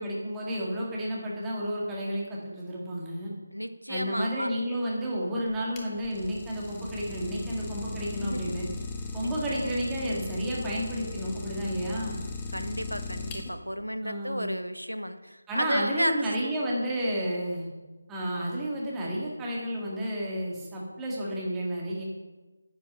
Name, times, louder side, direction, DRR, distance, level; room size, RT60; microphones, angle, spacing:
voice 1, 0.0-3.3 3.9-8.7 9.1-12.2 14.0-14.5 15.5-17.7 18.1-22.0, equal, 10° right, -5 dB, 2.1 m, -31 dB
voice 2, 3.5-4.5 8.2-8.5 9.2-9.7 12.5-16.2 18.4-18.5, equal, 90° right, 10 dB, 0.9 m, -32 dB
Idling, 5.5-13.8, left 3 dB, 15° left, 1.2 m, -38 dB
10.0 x 9.2 x 5.7 m, 1.2 s
figure-of-eight pair, 160°, 0 cm